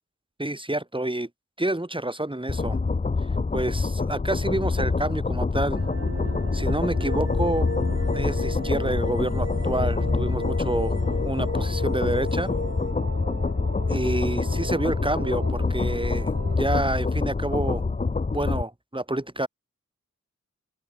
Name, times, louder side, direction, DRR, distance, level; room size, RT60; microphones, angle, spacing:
voice 1, 0.4-1.3 1.6-2.8 3.5-5.8 6.5-7.7 8.1-10.9 11.2-12.5 13.9-17.8 18.3-19.5, right 1 dB, 15° right, 3.9 m, -28 dB
sound 1, 2.5-18.6, left 4 dB, 25° left, 0.6 m, -26 dB
sound 2, 5.7-16.6, right 4 dB, 55° right, 1.5 m, -38 dB
sound 3, 7.0-12.9, left 4 dB, 40° left, 1.1 m, -35 dB
open air
wide cardioid pair, 70°, 29 cm